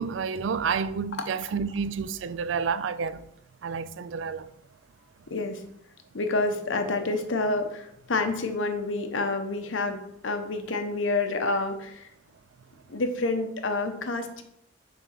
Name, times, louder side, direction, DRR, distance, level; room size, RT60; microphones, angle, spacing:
voice 1, 0.0-3.3 3.6-4.5, right 6 dB, 70° right, 0.4 m, -30 dB
voice 2, 5.3-5.6 6.1-10.0 10.2-12.1 12.9-14.4, left 3 dB, 85° left, 0.9 m, -28 dB
6.6 x 3.7 x 5.8 m
head